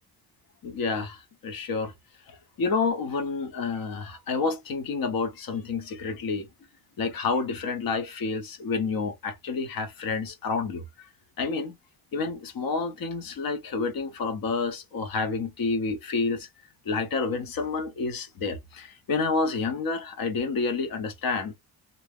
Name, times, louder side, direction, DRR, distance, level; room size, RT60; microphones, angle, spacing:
voice 1, 0.6-1.9 2.3-6.5 7.0-11.1 11.4-11.7 12.1-16.5 16.8-21.6, left 4 dB, 60° left, 0.8 m, -29 dB
2.6 x 2.0 x 3.4 m
cardioid pair, 110°, 40 cm